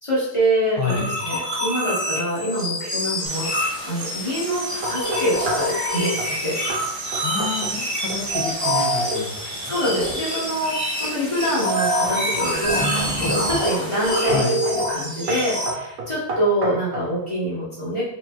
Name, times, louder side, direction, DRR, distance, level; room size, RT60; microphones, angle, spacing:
voice 1, 0.0-6.6 9.6-18.0, equal, 35° left, -9 dB, 0.4 m, -25 dB
voice 2, 0.8-1.1 7.2-7.7 8.0-9.8 14.3-14.6, left 5 dB, 75° left, 0 dB, 1.4 m, -28 dB
sound 1, 0.8-15.7, equal, 35° right, 1.1 m, -25 dB
Stream, 3.2-14.1, equal, 80° right, 0.3 m, -38 dB
sound 2, 4.8-5.7 6.2-6.4 6.7-6.9 7.1-7.8 8.1-8.5 11.8-12.5 13.1-13.5 14.3-14.5 14.8-15.0 15.3-17.1, right 3 dB, 65° right, 0.9 m, -31 dB
3.8 x 3.0 x 2.3 m, 0.81 s
omnidirectional pair, 2.2 m